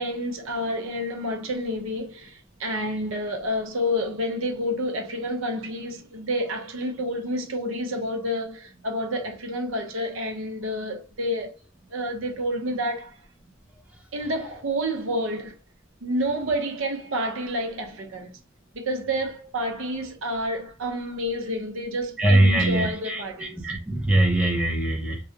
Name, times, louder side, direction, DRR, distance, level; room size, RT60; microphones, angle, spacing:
voice 1, 0.0-11.6 11.9-13.2 14.1-15.5 16.0-18.3 18.7-23.6, equal, 80° right, 0.7 m, -29 dB
voice 2, 22.2-25.2, right 1 dB, 5° right, 0.5 m, -22 dB
2.3 x 2.0 x 2.8 m
head